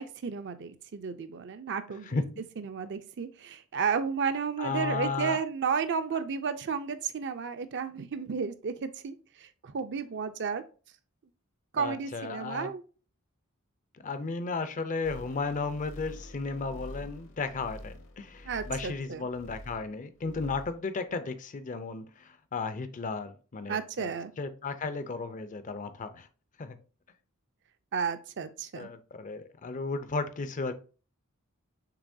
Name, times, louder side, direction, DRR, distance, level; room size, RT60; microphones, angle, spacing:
voice 1, 0.0-2.1 2.6-10.6 11.7-12.8 18.5-19.3 23.7-24.3 27.9-28.9, right 6 dB, 55° right, 0.5 m, -33 dB
voice 2, 4.6-5.4 11.8-12.7 13.9-24.1 24.4-26.3 26.6-26.8 28.7-30.7, left 4 dB, 35° left, 0.5 m, -34 dB
sound 1, 15.0-19.9 20.2-20.8 21.1-21.2, left 1 dB, 65° left, 0.9 m, -46 dB
6.8 x 3.0 x 2.6 m
head